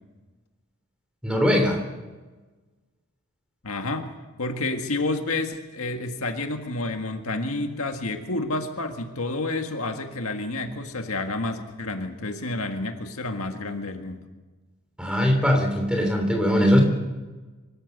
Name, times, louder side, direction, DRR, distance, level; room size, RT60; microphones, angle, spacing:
voice 1, 1.2-1.8 15.0-16.8, equal, 5° right, 3 dB, 3.2 m, -20 dB
voice 2, 3.6-4.1 4.4-14.3, left 2 dB, 75° left, 5 dB, 1.8 m, -29 dB
24.5 x 13.5 x 8.0 m, 1.3 s
head